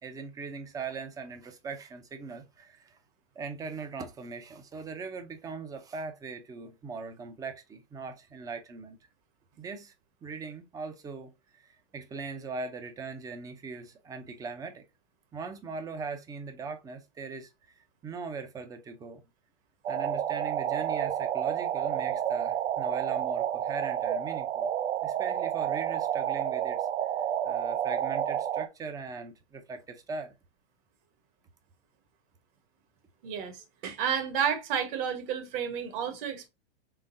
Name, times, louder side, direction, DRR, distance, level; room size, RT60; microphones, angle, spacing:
voice 1, 0.0-3.0 3.4-9.0 9.6-9.9 10.2-14.9 15.3-17.5 17.8-19.2 19.9-24.7 25.0-26.9 27.4-30.3, right 4 dB, 10° right, 0.5 m, -40 dB
sound 1, 19.8-28.7, right 10 dB, 85° right, 0.5 m, -30 dB
voice 2, 33.2-36.5, right 8 dB, 50° right, 1.3 m, -31 dB
3.8 x 3.4 x 2.6 m
hypercardioid pair, 130°, 32 cm